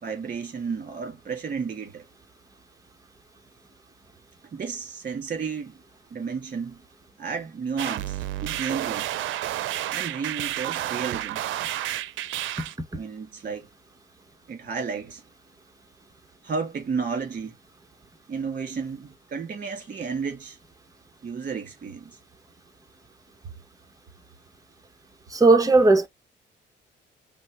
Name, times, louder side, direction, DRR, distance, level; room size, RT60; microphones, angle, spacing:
voice 1, 0.0-2.0 4.5-5.8 6.1-6.8 7.2-9.1 9.9-11.4 12.9-13.7 14.5-15.2 16.4-17.5 18.3-20.6 21.2-22.2, right 5 dB, 45° right, 2.4 m, -32 dB
sound 1, 7.8-12.8, right 13 dB, 75° right, 0.5 m, -30 dB
voice 2, 25.3-26.1, right 3 dB, 15° right, 1.0 m, -16 dB
5.3 x 2.1 x 3.1 m
cardioid pair, 90°, 20 cm